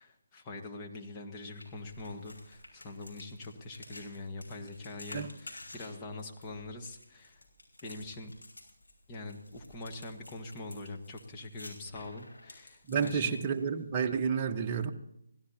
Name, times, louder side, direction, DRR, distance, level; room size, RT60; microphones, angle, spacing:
voice 1, 0.0-7.4 7.8-8.3 9.1-13.5, left 2 dB, 20° left, 1 dB, 1.6 m, -44 dB
sound 1, 1.4-13.8, left 2 dB, 85° left, 6.4 m, -52 dB
voice 2, 12.9-14.9, right 6 dB, 25° right, 3 dB, 1.2 m, -30 dB
24.5 x 16.5 x 2.9 m, 0.79 s
figure-of-eight pair, 150°, 0 cm